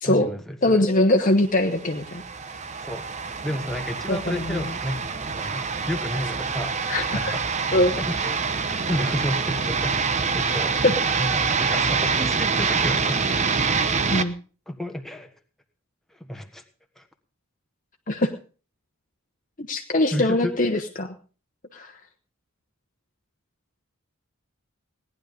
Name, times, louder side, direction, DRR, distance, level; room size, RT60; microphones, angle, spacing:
voice 1, 0.0-0.8 2.8-3.1 3.4-6.8 7.1-7.6 8.0-10.1 10.3-10.8 11.2-13.4 14.7-15.3 16.2-16.6 17.0-17.1 20.1-20.5, equal, ahead, 5 dB, 1.4 m, -31 dB
voice 2, 0.6-2.2 4.1-4.6 6.9-7.3 7.7-7.9 10.8-11.0 14.1-14.3 18.1-18.3 19.7-21.1 21.7-21.9, left 1 dB, 35° left, 4 dB, 1.0 m, -22 dB
sound 1, 1.7-14.2, right 5 dB, 30° right, 0.9 m, -26 dB
17.5 x 11.0 x 5.2 m, 0.38 s
head